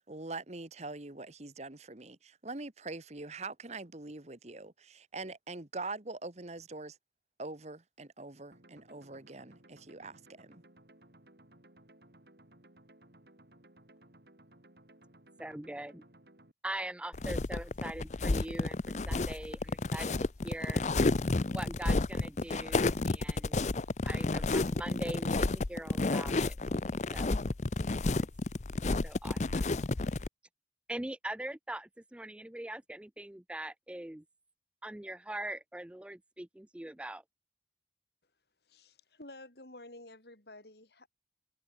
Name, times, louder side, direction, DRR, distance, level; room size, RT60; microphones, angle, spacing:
voice 1, 0.0-7.0 7.4-10.6, right 3 dB, 40° right, 1.5 m, -43 dB
sound 1, 8.5-16.5, right 1 dB, 60° right, 3.6 m, -60 dB
voice 2, 15.4-16.0 16.6-20.8 21.5-23.7 24.0-26.6 27.1-27.4 29.0-29.8 30.9-34.2 34.8-37.2, right 1 dB, 5° right, 0.3 m, -42 dB
sound 2, 17.1-30.3, left 3 dB, 40° left, 0.6 m, -31 dB
voice 3, 38.7-41.1, left 2 dB, 65° left, 5.5 m, -51 dB
head